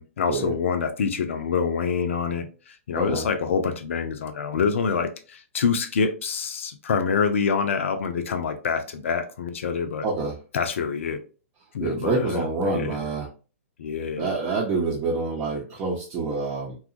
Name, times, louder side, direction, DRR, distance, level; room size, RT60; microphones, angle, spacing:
voice 1, 0.0-2.5 2.9-10.1 10.5-11.2 11.7-13.0 13.8-14.3, left 6 dB, 65° left, 0.6 m, -26 dB
voice 2, 2.9-3.3 10.0-10.4 11.8-13.3 14.2-16.8, right 3 dB, 30° right, 0.7 m, -27 dB
2.8 x 2.3 x 2.5 m
hypercardioid pair, 125°, 7 cm